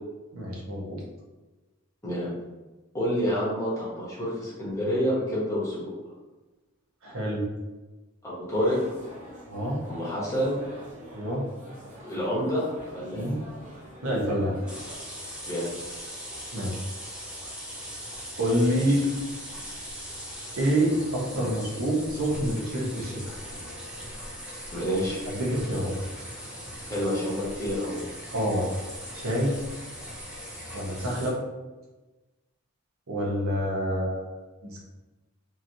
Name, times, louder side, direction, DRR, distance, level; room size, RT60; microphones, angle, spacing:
voice 1, 0.3-1.0 7.0-7.5 9.5-9.8 11.1-11.5 13.1-13.4 14.0-14.5 16.5-16.8 18.4-19.1 20.6-23.3 25.2-25.9 28.3-28.7 29.1-29.5 30.7-31.4 33.1-34.8, equal, 70° right, -3 dB, 0.8 m, -27 dB
voice 2, 2.9-5.9 8.2-8.8 9.9-10.6 12.0-12.7 12.9-13.3 15.5-15.7 18.7-18.9 24.7-25.2 26.9-28.0, equal, 15° left, -7 dB, 0.8 m, -28 dB
sound 1, 8.5-15.0, equal, 35° right, 0.7 m, -45 dB
sound 2, 14.7-31.3, equal, 5° right, 0.4 m, -40 dB
2.9 x 2.6 x 2.6 m, 1.2 s
head